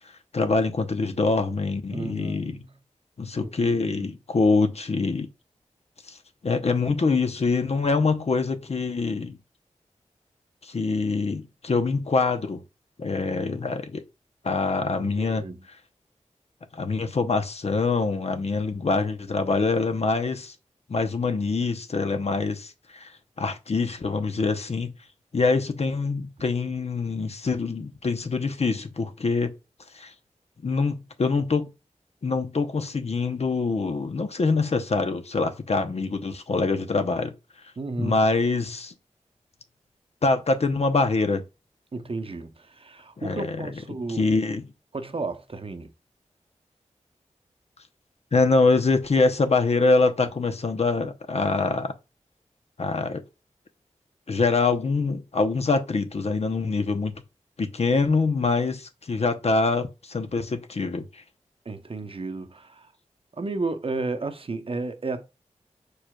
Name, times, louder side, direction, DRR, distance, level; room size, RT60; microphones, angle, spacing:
voice 1, 0.3-2.6 3.2-5.3 6.1-6.2 6.4-9.4 10.6-12.6 13.0-14.0 14.4-15.4 16.7-20.5 20.9-23.1 23.4-24.9 25.3-29.5 29.9-30.1 30.6-31.7 32.2-37.3 38.0-38.9 40.2-41.4 43.2-43.7 44.1-44.6 48.3-51.9 52.8-53.2 54.3-57.1 57.6-61.2, left 3 dB, 55° left, 0.7 m, -24 dB
voice 2, 1.9-2.7 3.4-4.1 15.0-15.6 37.8-38.2 41.9-44.3 44.9-45.9 61.7-62.9 63.4-65.3, right 3 dB, 45° right, 0.7 m, -33 dB
4.7 x 4.7 x 2.3 m
cardioid pair, 50°, 13 cm